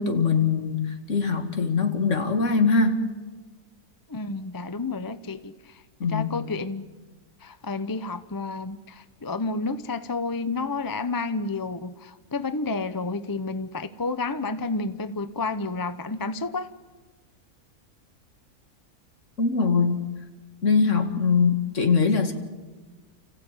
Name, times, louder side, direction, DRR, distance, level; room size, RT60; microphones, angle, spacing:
voice 1, 0.0-3.0 6.0-6.3 19.4-20.1 20.6-22.3, left 5 dB, 55° left, 6 dB, 2.1 m, -22 dB
voice 2, 4.1-5.8 6.1-6.9 7.4-16.7, left 3 dB, 20° left, 11 dB, 0.6 m, -30 dB
29.5 x 15.5 x 9.0 m, 1.3 s
omnidirectional pair, 1.6 m